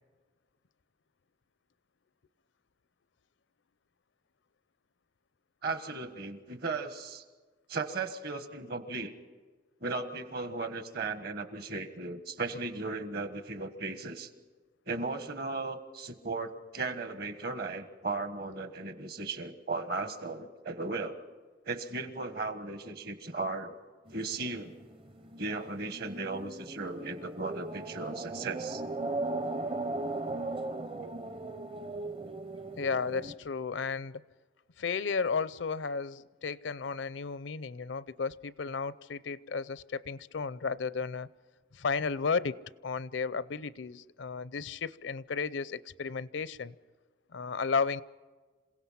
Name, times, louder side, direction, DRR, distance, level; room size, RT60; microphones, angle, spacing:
voice 1, 5.6-7.2 7.7-9.1 9.8-14.3 14.9-21.2 21.6-23.7 24.1-24.7 25.4-28.8, right 3 dB, 50° right, 9 dB, 1.5 m, -36 dB
sound 1, 24.1-33.4, right 2 dB, 25° right, 0.7 m, -38 dB
voice 2, 32.8-34.2 34.8-41.3 41.7-42.6 42.8-46.7 47.3-48.0, left 5 dB, 75° left, 18 dB, 0.6 m, -33 dB
27.5 x 17.0 x 5.8 m, 1.4 s
head